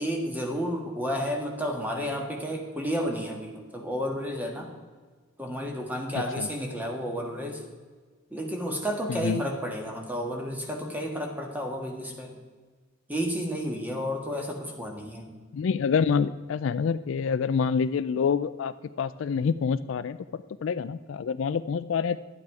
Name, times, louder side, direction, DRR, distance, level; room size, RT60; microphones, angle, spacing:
voice 1, 0.0-4.7 5.4-7.6 8.3-12.3 13.1-15.3, equal, 10° right, 1 dB, 1.5 m, -31 dB
voice 2, 6.1-6.5 9.1-9.4 15.5-22.2, left 6 dB, 65° left, 14 dB, 0.3 m, -27 dB
11.0 x 8.9 x 4.8 m, 1.4 s
head